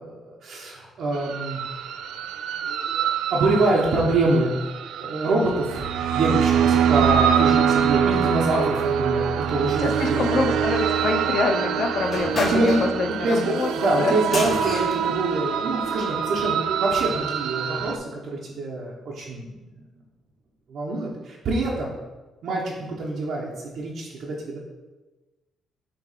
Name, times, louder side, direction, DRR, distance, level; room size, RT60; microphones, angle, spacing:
voice 1, 0.0-1.6 2.6-4.5 4.9-5.9 6.1-10.4 12.5-12.8 13.2-19.5 20.7-21.9 22.4-23.5 23.7-24.6, right 2 dB, 60° right, -4 dB, 1.1 m, -25 dB
sound 1, 1.1-18.0, right 8 dB, 85° right, 0.4 m, -24 dB
voice 2, 9.8-14.2, left 4 dB, 50° left, 4 dB, 0.6 m, -25 dB
sound 2, 12.1-16.2, left 1 dB, 35° left, 2.1 m, -33 dB
6.8 x 3.2 x 5.0 m, 1.1 s
cardioid pair, 130°, 0 cm